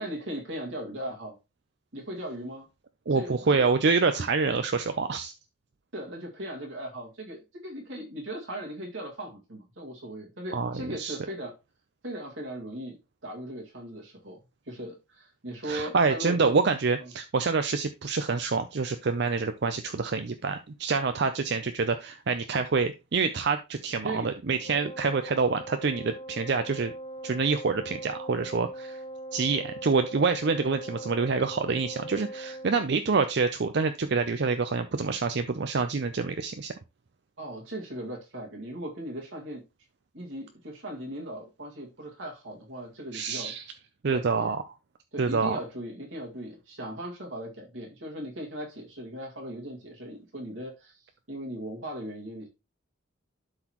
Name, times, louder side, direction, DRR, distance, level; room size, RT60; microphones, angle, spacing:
voice 1, 0.0-1.4 1.9-2.7 3.1-3.7 5.9-11.6 12.0-13.0 13.2-14.4 14.7-16.6 17.0-17.1 24.0-24.3 37.4-39.6 40.1-43.5 44.1-44.6 45.1-52.5, right 1 dB, 75° right, -1 dB, 2.0 m, -38 dB
voice 2, 3.1-5.3 10.5-11.2 15.6-26.9 27.2-29.0 29.3-36.7 43.1-43.6 44.0-44.6 45.2-45.6, right 4 dB, 55° right, 8 dB, 0.5 m, -27 dB
Wind instrument woodwind instrument, 24.6-32.8, right 1 dB, 25° left, 1.6 m, -41 dB
12.0 x 4.0 x 3.0 m, 0.26 s
head